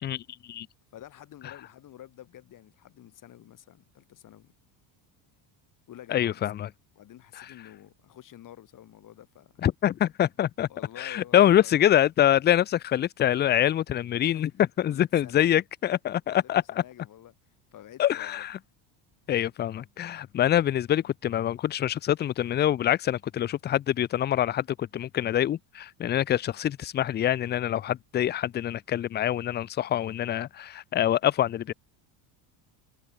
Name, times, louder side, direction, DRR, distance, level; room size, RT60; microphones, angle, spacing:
voice 1, 0.9-4.5 5.9-6.5 7.0-9.7 10.7-11.7 14.2-14.4 14.9-15.7 16.3-17.3 17.7-18.5 21.0-21.1, left 12 dB, 40° left, 4.2 m, -49 dB
voice 2, 6.1-6.7 7.4-7.5 9.6-10.7 11.0-14.5 14.8-16.8 18.0-18.6 19.3-31.7, left 11 dB, 20° left, 0.4 m, -25 dB
cardioid pair, 170°, 50 cm